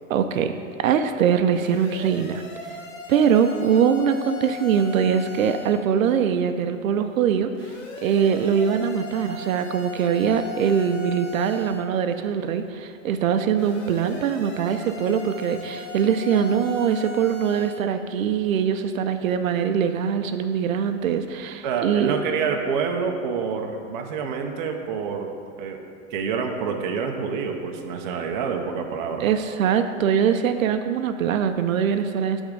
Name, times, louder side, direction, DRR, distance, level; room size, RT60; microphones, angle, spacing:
voice 1, 0.1-0.5 0.8-2.4 3.1-7.5 8.0-22.2 29.2-32.4, right 7 dB, 75° right, 8 dB, 0.6 m, -22 dB
sound 1, 1.5-5.8 7.5-11.9 13.5-17.9, left 4 dB, 60° left, 1.5 m, -38 dB
voice 2, 21.6-25.3 25.6-25.8 26.1-29.3, right 5 dB, 35° right, 3 dB, 0.6 m, -27 dB
8.4 x 3.6 x 6.4 m, 2.4 s
hypercardioid pair, 160°, 40 cm